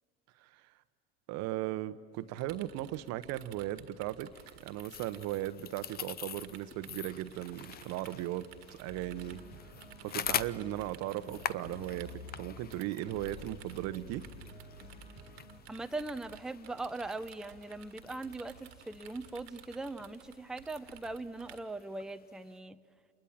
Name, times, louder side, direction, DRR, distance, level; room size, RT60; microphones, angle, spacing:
voice 1, 1.3-4.3 4.6-9.4 10.0-14.2, right 14 dB, 55° right, 14 dB, 1.0 m, -37 dB
sound 1, 2.1-21.6, right 11 dB, 80° right, 1.6 m, -55 dB
sound 2, 4.3-22.6, left 9 dB, 30° left, 0.7 m, -45 dB
sound 3, 8.8-15.6, left 1 dB, 85° left, 5.2 m, -50 dB
voice 2, 15.7-22.8, right 2 dB, ahead, 9 dB, 0.7 m, -40 dB
27.5 x 21.0 x 7.4 m, 2.5 s
hypercardioid pair, 75°, 30 cm